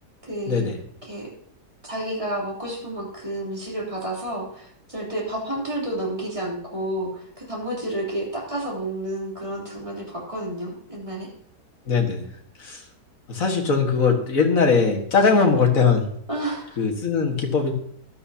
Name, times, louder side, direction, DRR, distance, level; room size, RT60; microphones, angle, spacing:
voice 1, 0.2-0.6 1.0-1.3 1.8-11.3 15.1-15.3 16.3-16.8, right 1 dB, 20° right, -4 dB, 3.4 m, -30 dB
voice 2, 11.9-12.2 12.6-12.8 13.3-16.1 16.8-17.7, left 5 dB, 55° left, 1 dB, 2.0 m, -20 dB
15.0 x 11.5 x 2.8 m, 0.66 s
omnidirectional pair, 1.7 m